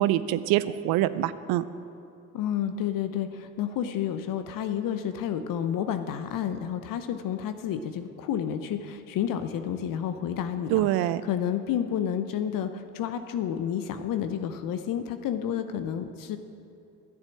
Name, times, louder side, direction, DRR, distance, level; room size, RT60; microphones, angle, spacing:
voice 1, 0.0-1.6 10.7-11.2, right 14 dB, 65° right, 15 dB, 0.6 m, -25 dB
voice 2, 2.3-16.4, left 9 dB, 60° left, 9 dB, 0.8 m, -30 dB
11.5 x 7.1 x 8.7 m, 2.6 s
hypercardioid pair, 60°, 38 cm